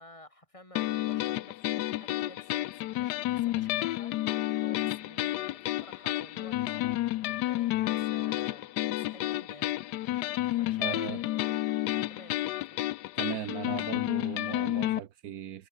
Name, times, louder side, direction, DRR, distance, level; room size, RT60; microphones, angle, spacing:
voice 1, 0.0-10.0 10.6-11.8 12.1-12.8, left 1 dB, 20° left, 6.9 m, -53 dB
sound 1, 0.8-15.0, left 16 dB, 85° left, 1.2 m, -31 dB
voice 2, 10.8-11.2 13.2-15.7, right 10 dB, 70° right, 1.3 m, -38 dB
omnidirectional pair, 1.7 m